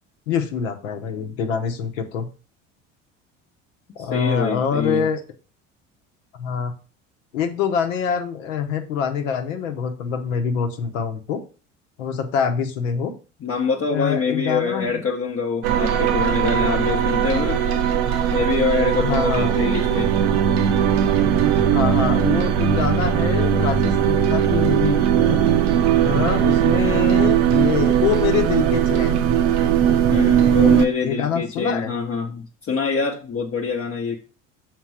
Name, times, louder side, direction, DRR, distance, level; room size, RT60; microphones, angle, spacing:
voice 1, 0.3-2.3 4.0-5.2 6.3-6.7 7.3-11.4 12.0-13.1 13.9-15.0 19.0-19.6 21.7-25.4 26.0-29.3 31.0-31.9, left 7 dB, 75° left, 1.0 m, -25 dB
voice 2, 4.0-5.1 13.4-17.6 17.9-18.0 18.3-20.1 30.1-34.2, left 5 dB, 35° left, 0.9 m, -25 dB
sound 1, 15.6-30.9, right 9 dB, 60° right, 0.8 m, -19 dB
6.0 x 3.7 x 4.7 m
hypercardioid pair, 65°, 38 cm